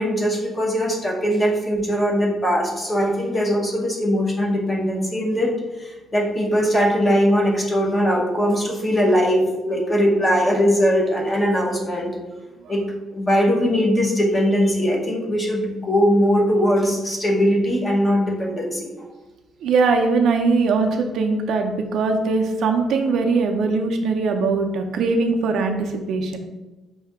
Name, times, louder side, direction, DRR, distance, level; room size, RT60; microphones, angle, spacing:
voice 1, 0.0-5.5 5.8-12.2 12.7-12.8 13.1-19.1, equal, 20° left, -1 dB, 0.8 m, -20 dB
voice 2, 19.6-26.4, right 4 dB, 65° right, 4 dB, 0.5 m, -21 dB
5.6 x 2.7 x 3.5 m, 1.2 s
cardioid pair, 170°, 0 cm